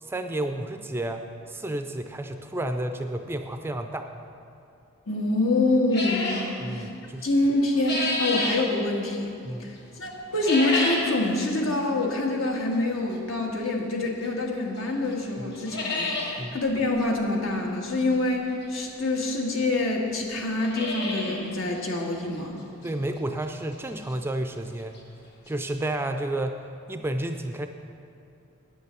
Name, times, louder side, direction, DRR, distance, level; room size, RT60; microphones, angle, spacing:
voice 1, 0.0-4.1 6.6-7.3 9.4-9.7 15.4-15.5 16.4-16.6 22.8-24.9 25.5-26.6 26.9-27.7, right 1 dB, 10° right, 6 dB, 0.4 m, -31 dB
voice 2, 5.1-6.9 7.2-9.3 9.6-22.6, left 2 dB, 75° left, 0 dB, 1.6 m, -26 dB
sound 1, 5.9-6.5 7.4-8.6 10.3-11.1 11.5-11.6 12.4-12.5 14.2-14.3 14.8-14.9 15.1-15.2 15.5-16.3 16.7-16.8 17.0-17.1 18.6-18.7 19.5-19.6 19.8-19.9 20.4-21.4 21.7-21.8 22.3-22.4 22.9-23.0 24.7-24.8 24.9-25.0 25.5-25.6, left 2 dB, 50° left, 2.2 m, -29 dB
9.5 x 8.3 x 6.8 m, 2.6 s
head